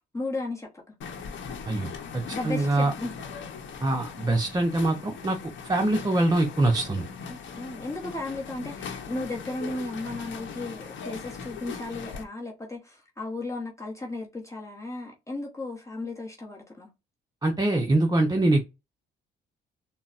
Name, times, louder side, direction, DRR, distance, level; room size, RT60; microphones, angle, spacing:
voice 1, 0.1-0.8 2.3-3.1 7.3-16.9, left 2 dB, 15° left, 0.8 m, -35 dB
sound 1, 1.0-12.2, left 6 dB, 70° left, 0.8 m, -40 dB
voice 2, 1.7-2.9 3.8-5.4 5.7-7.0 17.4-18.6, right 2 dB, 20° right, 0.6 m, -24 dB
3.9 x 2.0 x 2.4 m
cardioid pair, 90°, 20 cm